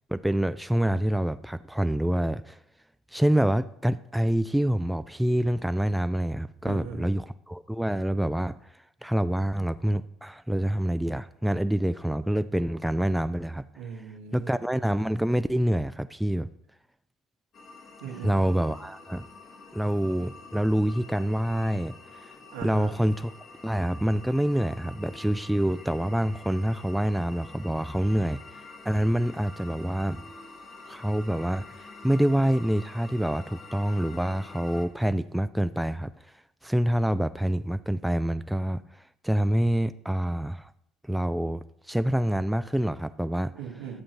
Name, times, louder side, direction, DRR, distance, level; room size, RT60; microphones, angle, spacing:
voice 1, 0.1-2.6 3.1-8.6 9.0-13.6 14.3-16.5 18.1-19.3 19.7-22.3 22.6-23.3 23.6-28.4 28.9-30.2 30.9-36.1 36.6-40.7 41.1-43.5, right 1 dB, 5° right, 12 dB, 0.3 m, -26 dB
voice 2, 6.6-7.1 13.8-14.5 18.0-18.4 22.5-22.9 43.5-44.0, right 7 dB, 80° right, 0 dB, 1.4 m, -39 dB
sound 1, 17.5-34.9, left 3 dB, 55° left, 1.4 m, -47 dB
11.5 x 7.4 x 2.9 m, 0.74 s
hypercardioid pair, 60°, 0 cm